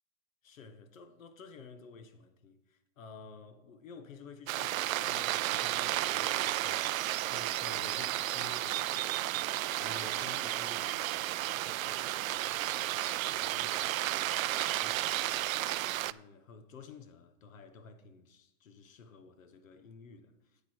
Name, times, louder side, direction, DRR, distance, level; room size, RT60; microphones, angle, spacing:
voice 1, 0.4-9.2 9.7-15.3 15.8-20.6, left 5 dB, 80° left, 1.4 m, -52 dB
sound 1, 4.5-16.1, right 14 dB, 85° right, 0.5 m, -32 dB
10.5 x 8.5 x 4.5 m
hypercardioid pair, 170°, 39 cm